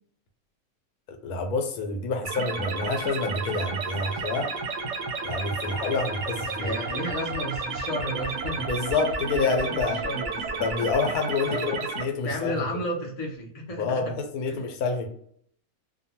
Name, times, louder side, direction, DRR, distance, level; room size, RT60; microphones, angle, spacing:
voice 1, 1.1-4.5 5.2-6.8 8.7-10.0 10.6-12.6 13.7-15.1, left 4 dB, 85° left, 4 dB, 1.1 m, -28 dB
sound 1, 2.3-12.0, right 4 dB, 65° right, 0.8 m, -32 dB
voice 2, 6.5-8.8 9.4-10.5 11.4-11.8 12.2-14.2 14.5-14.7, equal, 50° left, 0 dB, 0.4 m, -33 dB
2.6 x 2.2 x 2.8 m, 0.63 s
omnidirectional pair, 1.6 m